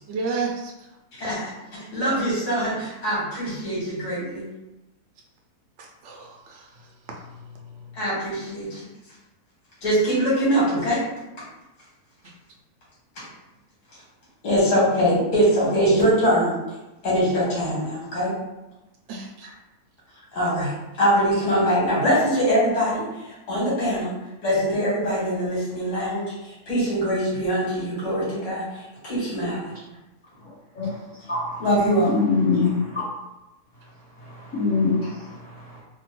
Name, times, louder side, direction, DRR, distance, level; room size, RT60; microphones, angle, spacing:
voice 1, 0.1-0.7 5.8-8.0 19.1-19.5, right 4 dB, 65° right, 0 dB, 0.7 m, -33 dB
voice 2, 1.1-1.5 1.9-4.5 8.0-8.9 9.8-11.0 13.2-13.3 14.4-16.6 17.0-18.3 20.3-24.1 24.4-29.7 31.6-32.1, equal, 80° left, -8 dB, 2.0 m, -23 dB
voice 3, 31.3-31.7 32.0-33.0 34.2-35.8, left 4 dB, 50° left, -13 dB, 2.0 m, -24 dB
3.7 x 2.2 x 3.0 m, 0.97 s
omnidirectional pair, 1.6 m